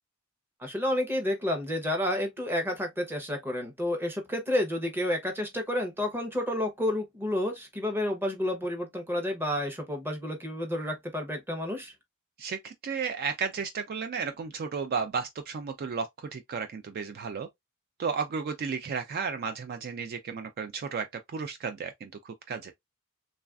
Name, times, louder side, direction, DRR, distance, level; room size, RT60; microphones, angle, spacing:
voice 1, 0.6-11.9, left 1 dB, 10° right, 0.8 m, -30 dB
voice 2, 12.4-17.5 18.0-22.7, right 5 dB, 50° right, 0.3 m, -33 dB
3.1 x 2.4 x 2.3 m
head